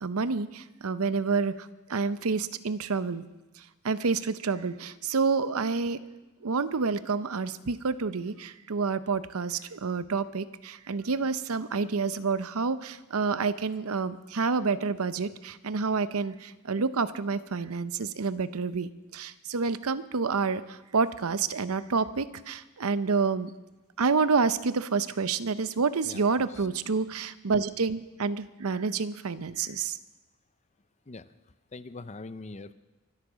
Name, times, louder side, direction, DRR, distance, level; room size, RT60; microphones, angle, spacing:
voice 1, 0.0-3.2 3.8-6.0 6.4-23.5 24.0-30.0, right 4 dB, 85° right, 14 dB, 0.7 m, -28 dB
voice 2, 26.1-26.7 31.1-31.3 31.7-32.7, left 3 dB, 30° left, 14 dB, 0.6 m, -43 dB
24.0 x 8.4 x 6.2 m, 1.1 s
head